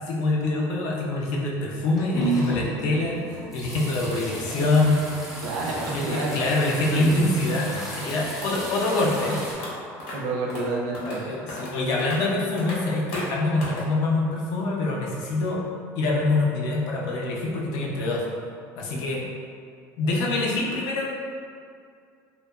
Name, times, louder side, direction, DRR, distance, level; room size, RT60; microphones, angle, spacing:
voice 1, 0.1-5.0 5.9-9.4 11.0-15.6 16.0-18.2 18.8-19.2 20.0-21.1, left 2 dB, 60° left, -2 dB, 0.5 m, -25 dB
sound 1, 1.7-9.5, right 1 dB, ahead, 0.4 m, -33 dB
voice 2, 5.4-6.4 10.1-11.2, right 3 dB, 80° right, -3 dB, 0.5 m, -29 dB
sound 2, 9.2-9.3 9.6-9.7 10.0-10.1 10.5-10.6 10.9-11.2 11.5-11.7 12.0-12.2 12.6-12.8 13.1-13.3 13.6-13.8, left 1 dB, 90° left, 0.8 m, -35 dB
2.7 x 2.2 x 2.2 m, 2.3 s
cardioid pair, 170°, 7 cm